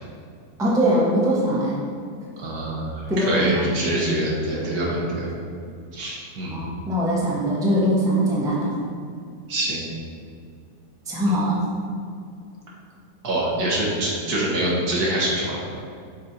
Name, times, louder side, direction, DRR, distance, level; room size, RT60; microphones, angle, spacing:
voice 1, 0.6-1.8 3.1-3.7 6.5-8.7 11.1-11.6, right 1 dB, 5° right, -6 dB, 0.8 m, -21 dB
voice 2, 2.4-5.3 5.9-6.6 9.5-9.8 13.2-15.6, right 1 dB, 70° right, -4 dB, 1.7 m, -25 dB
6.2 x 4.2 x 4.3 m, 2.3 s
omnidirectional pair, 1.7 m